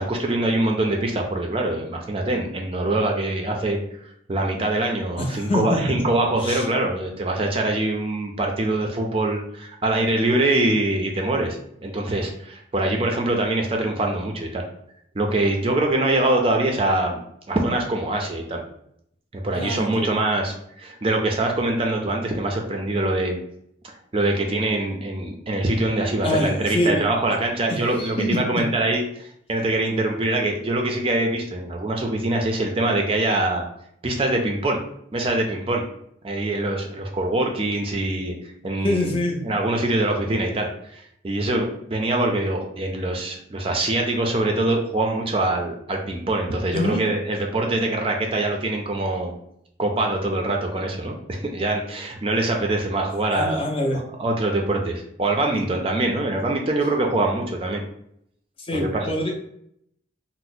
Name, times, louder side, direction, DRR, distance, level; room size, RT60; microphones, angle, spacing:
voice 1, 0.0-3.8 4.3-11.6 11.8-14.6 15.2-18.6 19.3-23.4 24.1-33.7 34.0-34.8 35.1-35.8 36.2-38.3 38.6-49.3 49.8-53.7 54.2-57.8 58.7-59.1, right 2 dB, 30° right, 2 dB, 0.4 m, -24 dB
voice 2, 5.2-6.0 6.4-6.7 19.5-20.1 26.2-27.0 27.7-28.7 38.8-39.4 46.7-47.0 53.3-54.0 55.5-55.6 58.6-59.3, left 1 dB, 30° left, 1 dB, 0.5 m, -25 dB
2.8 x 2.0 x 4.0 m, 0.72 s
head